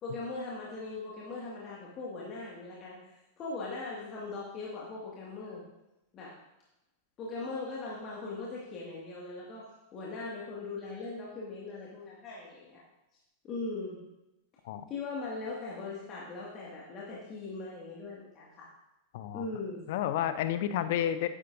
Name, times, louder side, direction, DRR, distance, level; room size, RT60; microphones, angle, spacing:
voice 1, 0.0-5.6 6.1-6.3 7.2-9.7 9.9-12.8 13.4-14.0 14.9-18.7 19.3-19.8, left 3 dB, 30° left, -5 dB, 2.1 m, -40 dB
voice 2, 19.1-19.5 19.9-21.3, left 11 dB, 50° left, 12 dB, 0.6 m, -30 dB
12.5 x 10.0 x 2.7 m, 0.92 s
figure-of-eight pair, 90°, 0 cm